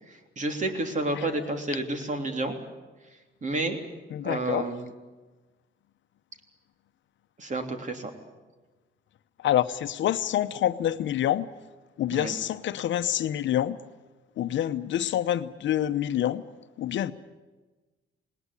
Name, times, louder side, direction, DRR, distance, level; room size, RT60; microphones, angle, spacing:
voice 1, 0.1-2.6 3.4-3.8 4.2-4.9 7.4-8.1 12.1-12.4, right 2 dB, 40° right, 3.4 m, -30 dB
voice 2, 4.1-4.6 9.4-11.5 12.0-13.8 14.4-16.4 16.8-17.1, left 11 dB, 70° left, 0.9 m, -27 dB
19.5 x 19.0 x 10.0 m
cardioid pair, 90°, 20 cm